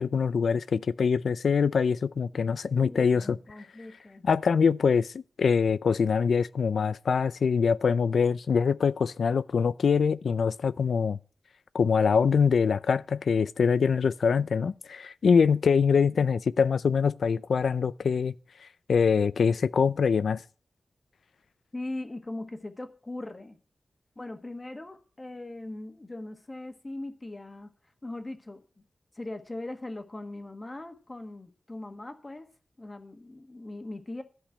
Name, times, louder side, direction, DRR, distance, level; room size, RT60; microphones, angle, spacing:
voice 1, 0.0-3.4 4.2-11.2 11.7-18.3 18.9-20.4, left 6 dB, 90° left, 0.5 m, -24 dB
voice 2, 2.6-4.3 21.7-23.6 24.1-27.7 28.0-28.6 29.1-32.5 32.8-34.2, left 2 dB, 25° left, 1.5 m, -40 dB
13.5 x 5.3 x 8.4 m
wide cardioid pair, 125°, 0 cm